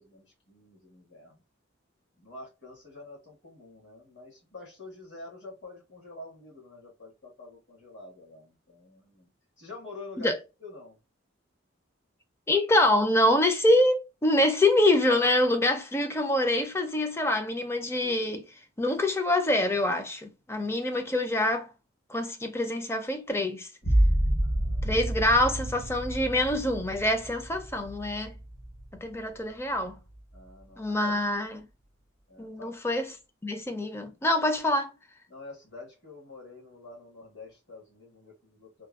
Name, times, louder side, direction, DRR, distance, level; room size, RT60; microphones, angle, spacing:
voice 1, 0.0-1.4 2.2-9.3 9.6-11.0 24.4-25.1 30.3-31.2 32.3-33.0 35.3-38.9, left 2 dB, 60° left, 1.7 m, -47 dB
voice 2, 12.5-18.5 18.8-21.7 22.1-23.7 24.8-28.3 29.0-30.0 30.8-31.7 32.4-33.1 33.4-34.9, left 1 dB, 15° left, 0.5 m, -25 dB
sound 1, 23.8-29.3 29.7-30.4, right 1 dB, 45° left, 1.2 m, -29 dB
3.4 x 2.3 x 2.3 m
head